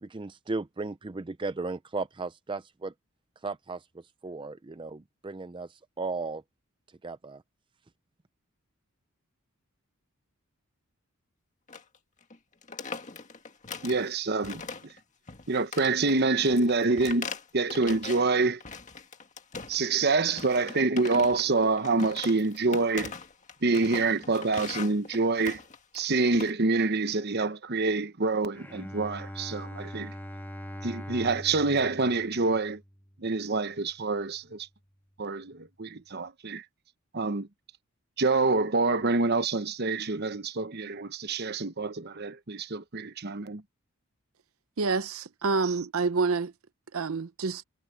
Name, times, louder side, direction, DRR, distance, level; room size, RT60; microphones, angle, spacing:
voice 1, 0.0-2.9 3.4-6.4 7.0-7.4, right 3 dB, 25° right, 0.5 m, -36 dB
sound 1, 11.7-12.0 12.2-12.4 12.6-14.1 14.4-15.0 15.3-18.3 18.6-19.9 20.3-26.5, left 4 dB, 35° left, 1.8 m, -41 dB
voice 2, 13.8-14.6 15.5-17.3 17.5-18.6 19.7-23.1 23.6-25.6 25.9-30.1 30.8-32.8 33.2-34.7 35.2-36.6 37.1-37.5 38.2-43.6, right 3 dB, 50° right, 1.0 m, -26 dB
Bowed string instrument, 28.5-33.8, equal, 10° left, 1.6 m, -42 dB
voice 3, 44.8-46.5 46.9-47.6, right 4 dB, 75° right, 0.7 m, -27 dB
head